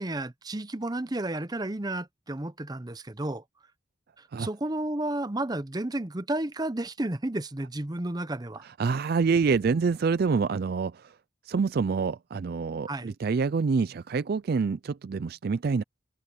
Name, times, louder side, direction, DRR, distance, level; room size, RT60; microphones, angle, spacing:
voice 1, 0.0-3.4 4.2-8.6 12.9-13.1, right 1 dB, 20° right, 0.7 m, -32 dB
voice 2, 8.8-11.1 11.5-15.8, right 5 dB, 50° right, 0.4 m, -26 dB
head